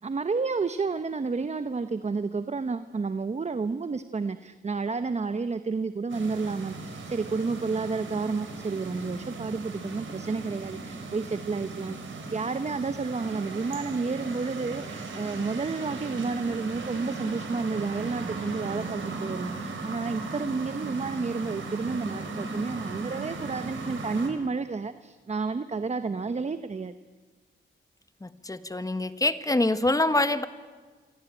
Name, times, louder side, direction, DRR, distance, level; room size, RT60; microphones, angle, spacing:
voice 1, 0.0-26.9, right 4 dB, 35° right, 11 dB, 0.9 m, -31 dB
sound 1, 6.1-24.3, right 3 dB, 75° right, 4.7 m, -37 dB
voice 2, 28.2-30.5, left 2 dB, 15° left, 11 dB, 1.4 m, -25 dB
27.0 x 23.5 x 9.0 m, 1.5 s
cardioid pair, 95°, 20 cm